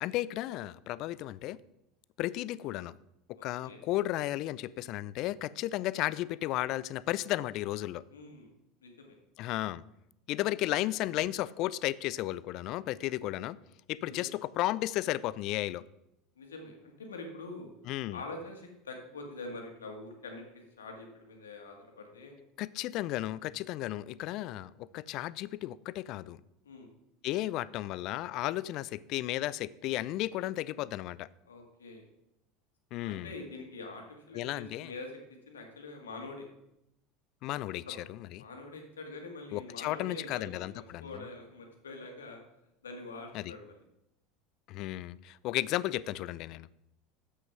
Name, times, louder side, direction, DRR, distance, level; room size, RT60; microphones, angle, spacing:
voice 1, 0.0-1.6 2.2-2.9 3.4-8.0 9.4-9.8 10.3-13.6 13.9-15.8 17.9-18.2 22.6-26.4 27.2-31.3 32.9-33.3 34.3-34.9 37.4-37.8 38.1-38.4 39.5-41.3 43.3-43.5 44.7-46.7, left 15 dB, 55° left, 19 dB, 0.4 m, -34 dB
voice 2, 3.4-3.8 8.1-8.5 8.8-9.2 14.0-14.2 16.4-17.7 18.1-22.4 26.6-26.9 31.5-32.1 33.0-36.5 37.9-38.0 38.4-42.4 42.8-43.8, left 3 dB, 85° left, 3 dB, 1.8 m, -45 dB
7.7 x 6.3 x 6.0 m, 0.84 s
hypercardioid pair, 80°, 0 cm